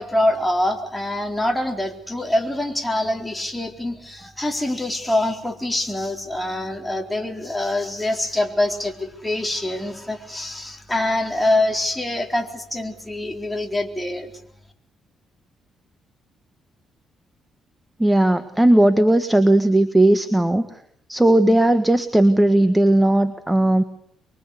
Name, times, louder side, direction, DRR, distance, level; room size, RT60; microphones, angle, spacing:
voice 1, 0.0-14.3, left 1 dB, 5° left, 3 dB, 4.1 m, -24 dB
voice 2, 18.0-20.7 21.1-23.8, right 1 dB, 10° right, 10 dB, 1.6 m, -16 dB
24.0 x 24.0 x 8.3 m, 0.70 s
cardioid pair, 90°, 0 cm